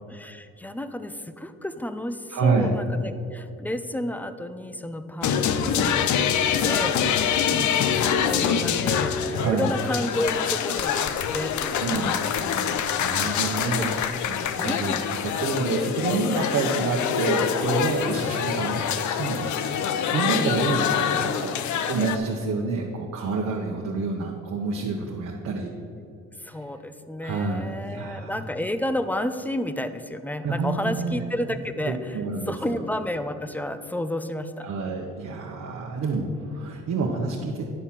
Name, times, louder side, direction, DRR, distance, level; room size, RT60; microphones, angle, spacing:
voice 1, 0.1-6.1 6.6-12.2 13.2-13.9 14.6-15.0 20.2-20.9 26.4-32.2 32.5-34.7, left 1 dB, 5° left, 10 dB, 0.5 m, -31 dB
voice 2, 2.3-2.7 9.4-9.7 11.7-13.9 14.3-14.9 15.2-19.6 19.9-21.5 21.8-25.7 27.2-28.3 30.4-31.2 31.9-32.8 34.6-37.7, right 4 dB, 65° right, -1 dB, 1.0 m, -28 dB
sound 1, 5.2-22.2, left 8 dB, 75° left, 0.6 m, -25 dB
9.9 x 4.2 x 7.3 m, 2.5 s
cardioid pair, 90°, 30 cm